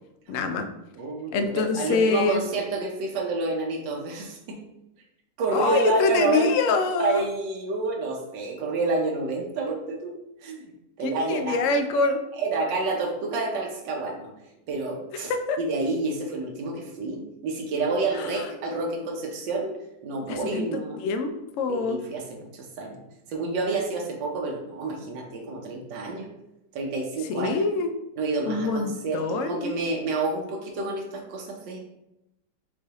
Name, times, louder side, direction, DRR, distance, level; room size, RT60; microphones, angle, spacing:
voice 1, 0.3-0.7 1.3-2.4 5.5-7.3 11.0-12.2 15.3-15.6 18.1-18.5 20.3-22.0 27.3-27.9 28.5-29.7, left 4 dB, 75° left, 6 dB, 0.7 m, -25 dB
voice 2, 0.9-4.6 5.4-6.5 7.0-10.2 10.4-10.7 11.0-11.6 12.4-14.3 14.7-15.3 15.6-19.7 20.0-21.0 21.7-23.0 23.3-26.3 26.7-27.7 28.2-31.8, right 3 dB, 90° right, 1 dB, 1.5 m, -29 dB
5.9 x 3.1 x 2.9 m, 0.86 s
omnidirectional pair, 1.9 m